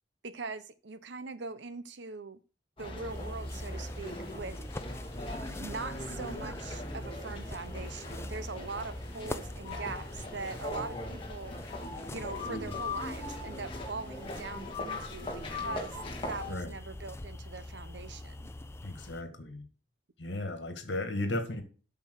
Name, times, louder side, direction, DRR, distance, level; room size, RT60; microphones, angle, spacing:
voice 1, 0.2-2.4 2.8-4.6 5.6-11.6 12.1-16.0 16.3-18.5, right 4 dB, 70° right, 0.8 m, -42 dB
sound 1, 2.8-16.5, left 2 dB, 30° left, 2.1 m, -39 dB
sound 2, 3.1-19.2, left 1 dB, 15° left, 0.6 m, -45 dB
voice 2, 18.8-19.7 20.2-21.6, left 1 dB, 75° left, 1.9 m, -35 dB
8.5 x 6.2 x 6.3 m
head